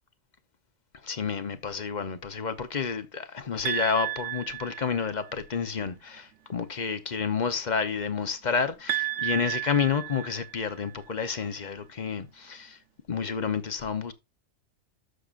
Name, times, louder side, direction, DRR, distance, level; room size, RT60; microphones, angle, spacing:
voice 1, 1.0-12.8 13.1-14.1, left 6 dB, 45° left, 0.9 m, -30 dB
sound 1, 3.7-5.3 8.9-10.9, right 13 dB, 85° right, 1.0 m, -33 dB
13.0 x 6.6 x 2.5 m
omnidirectional pair, 1.2 m